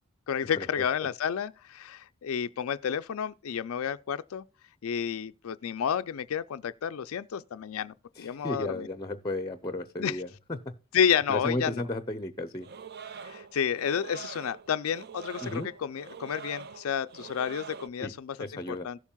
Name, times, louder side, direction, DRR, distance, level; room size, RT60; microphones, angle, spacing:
voice 1, 0.3-4.4 4.8-8.9 10.0-10.2 10.9-11.9 13.2-19.0, left 8 dB, 70° left, 0.4 m, -31 dB
voice 2, 8.2-10.7 11.3-12.7 15.4-15.7 18.0-18.1 18.4-18.9, left 1 dB, 20° left, 0.6 m, -34 dB
sound 1, 12.6-17.9, right 6 dB, 50° right, 0.5 m, -45 dB
17.0 x 7.2 x 2.2 m
head